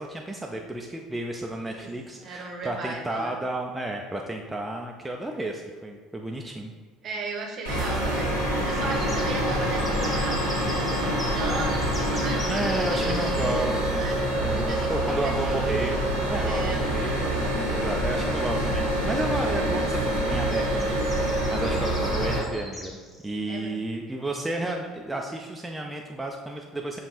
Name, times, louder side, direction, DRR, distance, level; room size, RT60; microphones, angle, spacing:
voice 1, 0.0-6.7 12.5-14.0 14.3-17.4 17.7-23.0 23.2-27.0, right 1 dB, 10° right, 1 dB, 0.3 m, -32 dB
voice 2, 2.2-3.4 7.0-8.4 8.6-14.2 14.5-15.9 16.5-16.8 23.5-23.8, right 3 dB, 40° right, 1 dB, 0.7 m, -37 dB
sound 1, 7.6-22.4, right 1 dB, 85° left, 1.2 m, -26 dB
sound 2, 8.9-13.5 16.0-16.1 16.4-16.5 17.8-17.9 18.2-18.7 19.2-19.4 20.5-23.3, left 1 dB, 20° left, 1.1 m, -40 dB
6.8 x 2.5 x 2.8 m, 1.5 s
figure-of-eight pair, 60°, 0 cm